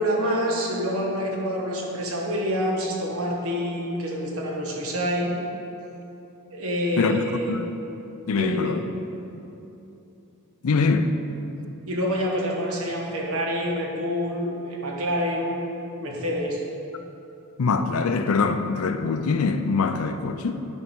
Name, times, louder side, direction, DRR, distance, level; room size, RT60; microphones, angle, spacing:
voice 1, 0.0-5.3 6.5-7.5 8.2-8.7 11.9-15.6 16.0-16.6, equal, 75° right, 1.4 m, -27 dB
voice 2, 7.0-7.6 8.3-8.8 10.6-11.1 17.6-20.6, left 4 dB, 75° left, 0.5 m, -23 dB
9.8 x 4.6 x 5.4 m
head